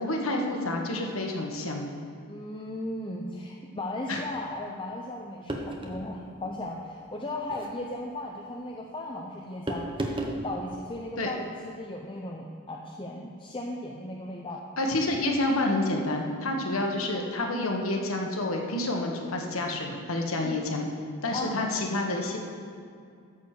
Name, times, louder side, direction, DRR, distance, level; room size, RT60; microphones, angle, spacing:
voice 1, 0.0-1.9 4.1-4.2 11.2-11.3 14.8-20.9 21.2-22.4, left 2 dB, 90° left, 2 dB, 1.3 m, -29 dB
voice 2, 2.3-14.6 20.4-20.6 21.3-21.9, left 1 dB, 25° left, -1 dB, 0.6 m, -36 dB
sound 1, 5.5-6.1 7.4-7.7 9.7-10.4, right 1 dB, 25° right, 0.9 m, -33 dB
13.5 x 4.8 x 6.5 m, 2.3 s
head